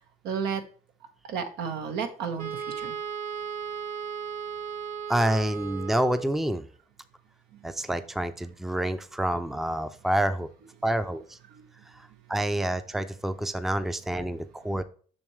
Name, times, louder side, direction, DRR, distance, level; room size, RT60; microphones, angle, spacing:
voice 1, 0.2-0.6 1.2-3.0 7.5-7.7 11.5-11.6 14.3-14.4, right 6 dB, 85° right, 5 dB, 1.5 m, -33 dB
Wind instrument woodwind instrument, 2.4-6.4, right 7 dB, 50° right, 1.6 m, -36 dB
voice 2, 5.1-6.7 7.6-10.5 10.8-11.4 11.9-14.8, right 1 dB, ahead, 11 dB, 0.5 m, -28 dB
7.1 x 6.2 x 3.2 m, 0.42 s
cardioid pair, 110°, 17 cm